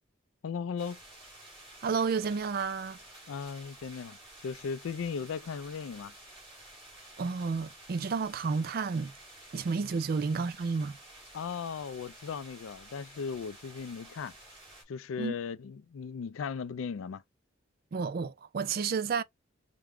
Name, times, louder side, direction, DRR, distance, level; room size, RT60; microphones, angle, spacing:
voice 1, 0.4-1.0 3.3-4.2 4.4-6.1 11.3-14.3 14.9-17.2, left 6 dB, 90° left, 0.4 m, -37 dB
sound 1, 0.8-14.8, right 1 dB, 25° right, 2.0 m, -52 dB
voice 2, 1.8-3.0 7.2-9.1 9.5-11.0 15.2-15.3 17.9-19.2, right 5 dB, 50° right, 0.3 m, -31 dB
4.6 x 2.1 x 3.6 m
head